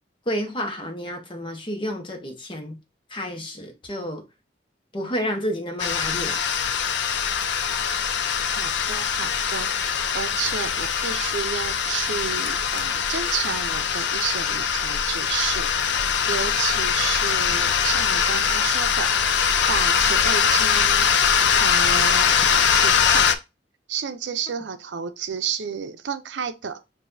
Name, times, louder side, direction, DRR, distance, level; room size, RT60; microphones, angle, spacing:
voice 1, 0.3-2.8 3.1-4.2 4.9-6.4, equal, 30° left, 1.2 m, -30 dB
sound 1, 5.8-23.4, left 7 dB, 75° left, 0.5 m, -22 dB
voice 2, 8.6-15.7 16.3-21.1 21.5-23.3 23.9-26.8, right 7 dB, 80° right, 0.6 m, -31 dB
6.7 x 2.7 x 2.6 m
head